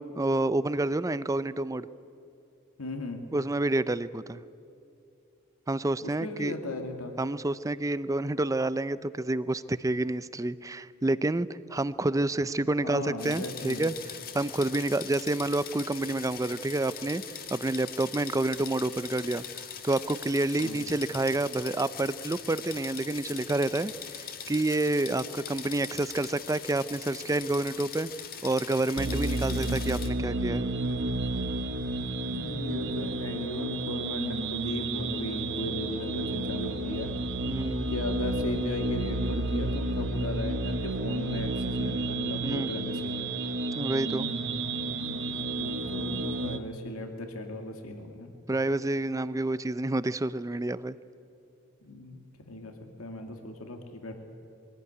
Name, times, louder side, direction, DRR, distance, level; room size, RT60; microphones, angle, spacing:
voice 1, 0.0-1.9 3.3-4.4 5.7-6.5 7.2-13.9 14.3-17.2 17.5-28.1 28.4-30.7 37.5-37.9 42.4-42.8 43.7-44.3 48.5-51.0, right 2 dB, 15° right, 16 dB, 0.5 m, -29 dB
voice 2, 2.8-3.2 6.0-7.1 12.8-13.9 20.6-20.8 32.3-37.2 37.9-43.3 45.3-48.3 51.8-54.1, left 1 dB, 85° left, 5 dB, 2.2 m, -37 dB
sound 1, 13.2-30.1, left 8 dB, 45° left, 1.5 m, -41 dB
sound 2, 29.0-46.6, right 2 dB, 60° right, 1.1 m, -31 dB
23.0 x 16.0 x 9.7 m, 2.6 s
head